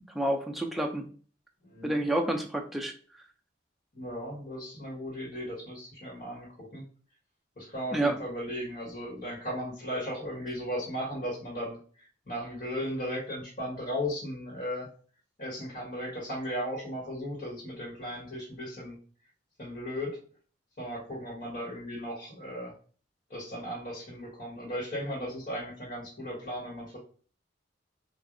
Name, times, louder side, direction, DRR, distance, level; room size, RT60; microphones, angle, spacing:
voice 1, 0.1-1.1 1.8-2.9 7.9-8.2, right 1 dB, ahead, 2 dB, 0.4 m, -29 dB
voice 2, 1.6-2.0 3.9-6.8 7.6-14.9 15.4-19.0 19.6-20.2 20.8-22.7 23.3-27.0, equal, 45° left, -5 dB, 1.5 m, -36 dB
6.1 x 2.5 x 2.6 m, 0.42 s
head